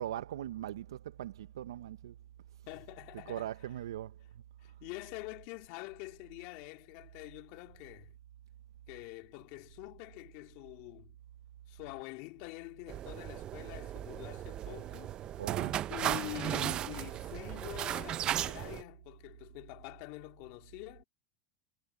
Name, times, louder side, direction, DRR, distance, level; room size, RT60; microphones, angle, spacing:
voice 1, 0.0-2.1 3.3-4.1 15.4-15.8 16.2-16.3, right 12 dB, 85° right, 0.7 m, -40 dB
voice 2, 2.7-3.8 4.6-8.1 8.9-11.1 11.7-15.2 15.9-21.0, left 26 dB, 60° left, 2.9 m, -46 dB
sound 1, 12.9-18.8, right 12 dB, 40° right, 0.6 m, -36 dB
hypercardioid pair, 105°, 2 cm